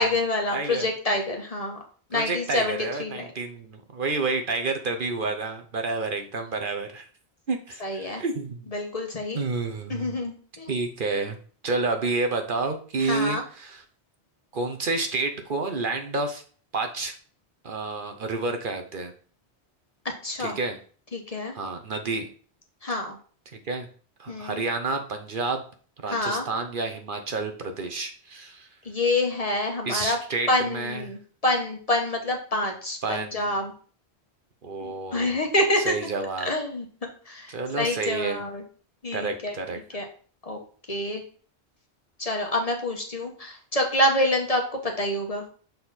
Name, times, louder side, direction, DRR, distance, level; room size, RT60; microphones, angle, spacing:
voice 1, 0.0-1.8 2.1-3.3 7.8-8.2 8.7-9.4 9.9-10.9 13.0-13.4 20.2-20.6 21.1-21.5 22.8-23.2 24.3-24.6 26.1-26.5 28.8-30.2 30.5-33.7 34.8-35.9 36.4-38.6 39.0-39.6 39.9-40.0 40.4-40.6 40.9-41.2 42.2-45.5, left 1 dB, 35° left, 2 dB, 1.1 m, -27 dB
voice 2, 0.5-0.9 2.1-7.1 7.5-8.7 9.3-10.1 10.7-11.4 11.6-13.8 14.5-16.4 16.7-17.1 17.6-19.1 20.4-20.8 21.5-22.3 23.5-23.9 24.2-25.6 26.0-28.7 29.8-30.5 30.7-31.1 33.0-33.5 34.6-35.4 35.9-36.5 37.5-38.4 39.1-39.8, right 3 dB, 55° right, 5 dB, 0.9 m, -29 dB
6.8 x 4.0 x 4.1 m, 0.43 s
omnidirectional pair, 1.1 m